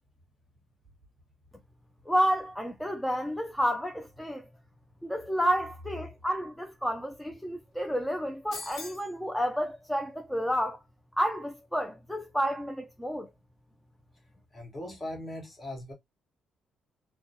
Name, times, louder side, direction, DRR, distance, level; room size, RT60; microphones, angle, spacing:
voice 1, 2.1-4.5 5.0-10.8 11.2-13.3, equal, 5° left, 0.4 m, -30 dB
sound 1, 8.5-9.1, left 3 dB, 70° left, 1.0 m, -41 dB
voice 2, 14.5-15.9, left 1 dB, 25° left, 1.2 m, -39 dB
3.0 x 2.1 x 2.6 m
cardioid pair, 90°, 0 cm